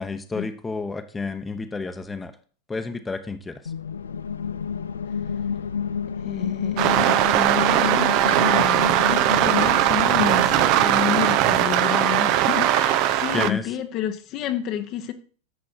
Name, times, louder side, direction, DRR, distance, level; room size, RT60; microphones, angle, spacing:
voice 1, 0.0-2.3 2.7-3.6 13.3-13.6, left 3 dB, 10° left, 1.0 m, -30 dB
sound 1, 3.7-11.4, left 7 dB, 70° left, 0.5 m, -30 dB
voice 2, 6.2-15.1, left 10 dB, 40° left, 1.0 m, -30 dB
sound 2, 6.8-13.5, right 12 dB, 45° right, 0.7 m, -20 dB
11.0 x 7.5 x 4.4 m
figure-of-eight pair, 90°, 0 cm